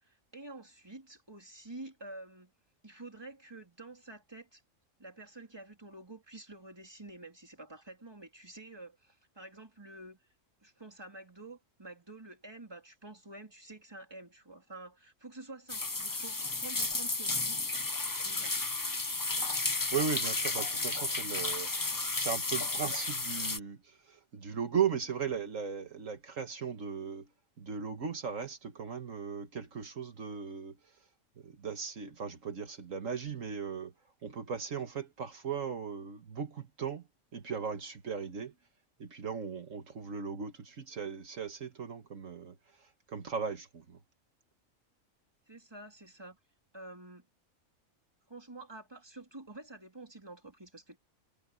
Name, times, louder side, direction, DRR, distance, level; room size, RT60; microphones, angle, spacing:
voice 1, 0.0-2.5 2.8-4.6 5.0-10.2 10.6-17.6 18.2-18.6 45.5-46.4 46.7-47.3 48.3-51.0, right 2 dB, 20° right, 3.2 m, -49 dB
sound 1, 15.7-23.6, left 3 dB, 20° left, 0.7 m, -33 dB
voice 2, 19.9-27.3 27.6-30.8 31.4-33.9 34.2-37.0 37.3-38.5 39.0-44.0, right 6 dB, 75° right, 1.9 m, -37 dB
omnidirectional pair, 1.4 m